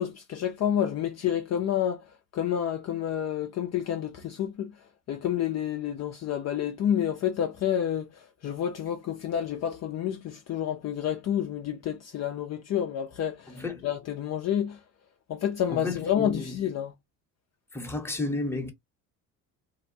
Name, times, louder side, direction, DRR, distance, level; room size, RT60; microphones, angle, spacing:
voice 1, 0.0-2.0 2.3-4.7 5.1-14.8 15.3-16.9, left 10 dB, 40° left, 0.5 m, -29 dB
voice 2, 13.5-13.9 15.7-16.6 17.7-18.7, left 2 dB, 5° left, 0.9 m, -32 dB
2.7 x 2.1 x 2.7 m
supercardioid pair, 75°, 41 cm